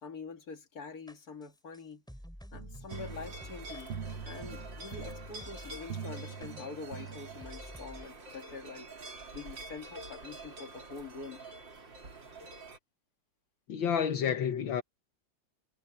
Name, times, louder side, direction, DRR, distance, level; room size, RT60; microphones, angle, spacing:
voice 1, 0.0-2.0 2.5-3.9 4.3-8.9 9.3-11.5, left 4 dB, 50° left, 2.6 m, -45 dB
sound 1, 1.1-5.9 6.4-6.5 7.1-7.2 7.4-8.1, equal, ahead, 3.2 m, -49 dB
sound 2, 2.5-7.8, right 7 dB, 85° right, 1.9 m, -44 dB
sound 3, 2.9-12.8, right 2 dB, 65° right, 3.8 m, -47 dB
voice 2, 13.7-14.8, left 8 dB, 75° left, 1.9 m, -29 dB
omnidirectional pair, 2.2 m